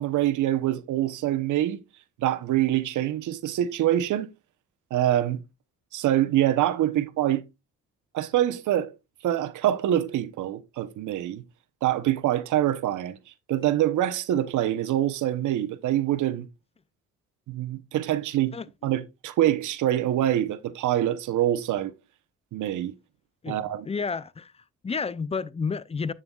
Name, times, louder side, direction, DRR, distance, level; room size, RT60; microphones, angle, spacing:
voice 1, 0.0-1.8 2.2-4.3 4.9-5.4 5.9-7.4 8.1-8.9 9.2-11.4 11.8-13.2 13.5-16.5 17.5-18.6 18.8-21.9 22.5-22.9 23.5-23.9, right 12 dB, 80° right, 0.9 m, -25 dB
voice 2, 23.8-26.1, left 5 dB, 20° left, 0.5 m, -31 dB
8.8 x 6.8 x 2.4 m
cardioid pair, 90°, 30 cm